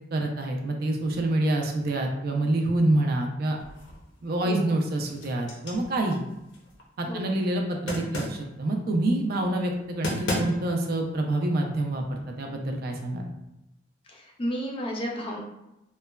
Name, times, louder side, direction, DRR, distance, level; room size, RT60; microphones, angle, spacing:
voice 1, 0.1-3.6 4.2-6.2 7.0-13.2, right 1 dB, 55° right, 2 dB, 0.4 m, -27 dB
sound 1, 3.6-4.2 4.6-6.8 7.9-8.5 9.7-9.8 10.0-10.9, left 1 dB, 80° left, 0.6 m, -33 dB
voice 2, 4.4-4.7 7.0-7.3 14.0-15.4, equal, 30° left, -1 dB, 0.4 m, -33 dB
3.0 x 2.1 x 2.2 m, 0.91 s
head